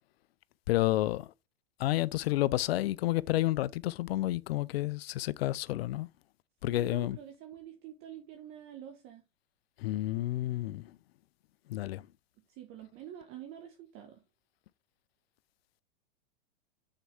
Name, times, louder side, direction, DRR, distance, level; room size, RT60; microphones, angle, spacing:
voice 1, 0.7-1.3 1.8-6.1 6.6-7.2 9.8-10.9 11.7-12.1, left 16 dB, 75° left, 0.6 m, -30 dB
voice 2, 6.7-9.2 12.5-14.2, right 10 dB, 40° right, 1.4 m, -47 dB
8.9 x 4.6 x 3.5 m
hypercardioid pair, 125°, 31 cm